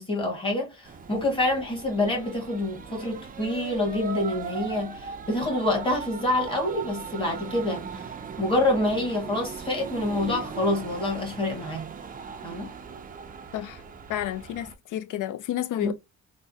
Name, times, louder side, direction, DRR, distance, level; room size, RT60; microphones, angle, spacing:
voice 1, 0.0-11.9 12.4-12.7 15.8-15.9, left 2 dB, 15° left, 1.4 m, -27 dB
sound 1, 0.8-14.7, right 6 dB, 25° right, 0.4 m, -39 dB
voice 2, 14.1-15.9, left 12 dB, 70° left, 0.5 m, -31 dB
3.4 x 2.1 x 2.6 m
cardioid pair, 145°, 33 cm